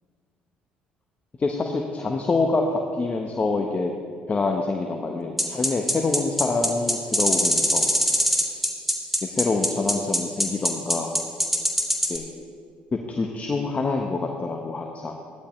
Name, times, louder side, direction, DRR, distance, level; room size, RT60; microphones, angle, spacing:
voice 1, 1.4-3.9 4.3-7.9 9.2-11.1 12.1-12.2 12.9-15.2, left 3 dB, 30° left, 2 dB, 1.1 m, -26 dB
sound 1, 5.4-12.2, equal, 5° right, 2.0 m, -22 dB
14.5 x 11.5 x 3.2 m, 2.1 s
hypercardioid pair, 55°, 4 cm